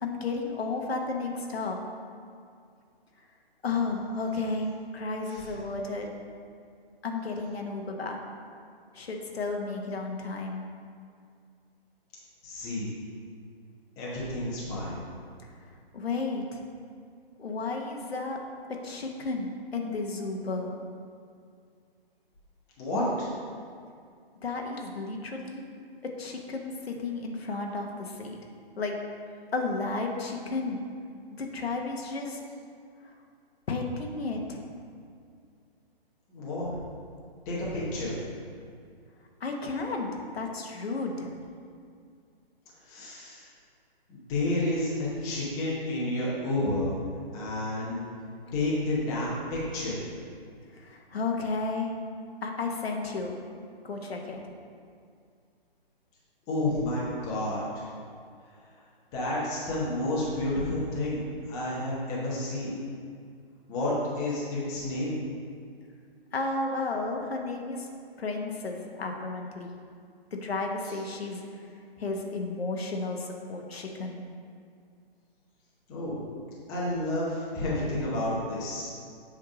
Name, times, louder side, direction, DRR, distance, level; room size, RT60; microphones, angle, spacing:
voice 1, 0.0-1.8 3.6-6.1 7.0-8.2 8.9-10.6 15.9-16.6 17.4-18.4 18.7-20.7 24.4-25.7 26.0-28.4 28.8-29.0 29.5-30.8 31.3-32.4 33.0-33.1 33.7-34.6 39.4-41.3 50.7-51.9 52.4-53.4 53.8-54.4 66.3-67.9 68.2-69.8 70.3-71.5 72.0-74.2, left 3 dB, 85° left, 2 dB, 1.1 m, -33 dB
voice 2, 12.4-12.9 14.0-15.0 22.8-23.3 36.3-36.7 37.5-38.1 42.9-43.5 44.1-47.0 47.3-48.0 48.5-50.0 56.5-57.8 59.1-61.2 61.5-62.7 63.7-65.2 75.9-76.1 76.7-78.9, left 1 dB, 10° left, -7 dB, 0.8 m, -30 dB
7.6 x 3.6 x 5.0 m, 2.3 s
hypercardioid pair, 160°, 30 cm